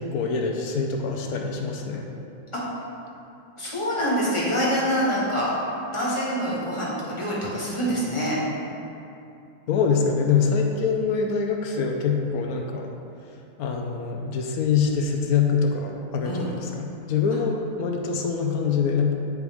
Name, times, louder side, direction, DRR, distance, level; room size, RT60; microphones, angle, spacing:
voice 1, 0.0-2.1 9.7-12.9 13.6-19.1, left 5 dB, 65° left, 2 dB, 1.0 m, -24 dB
voice 2, 3.6-5.5 5.9-8.4 16.2-16.5, equal, 15° left, -6 dB, 1.3 m, -25 dB
9.8 x 4.7 x 3.5 m, 2.7 s
omnidirectional pair, 2.0 m